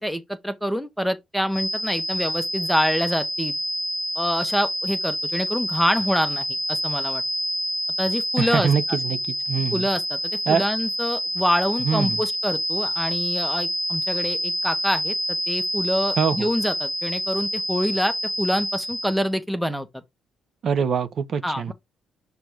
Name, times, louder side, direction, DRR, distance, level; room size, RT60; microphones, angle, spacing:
voice 1, 0.0-3.6 4.1-7.2 8.0-9.0 9.7-15.1 15.5-20.0 21.4-21.7, equal, ahead, 1.2 m, -26 dB
sound 1, 1.5-19.2, equal, 25° left, 1.7 m, -27 dB
voice 2, 8.4-9.8 10.5-10.6 11.9-12.2 16.2-16.5 20.6-21.7, right 6 dB, 55° right, 0.8 m, -23 dB
6.1 x 3.4 x 4.6 m
cardioid pair, 90°, 0 cm